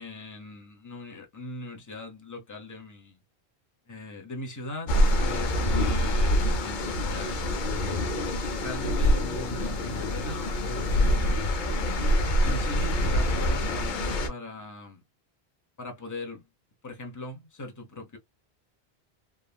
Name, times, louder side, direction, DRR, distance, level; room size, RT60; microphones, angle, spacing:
voice 1, 0.0-3.2 3.9-7.4 8.6-11.6 12.4-15.0 15.8-16.4 16.8-18.2, left 2 dB, 20° left, 0.7 m, -40 dB
sound 1, 4.9-14.3, equal, 55° left, 0.7 m, -25 dB
3.4 x 2.1 x 2.2 m
omnidirectional pair, 1.1 m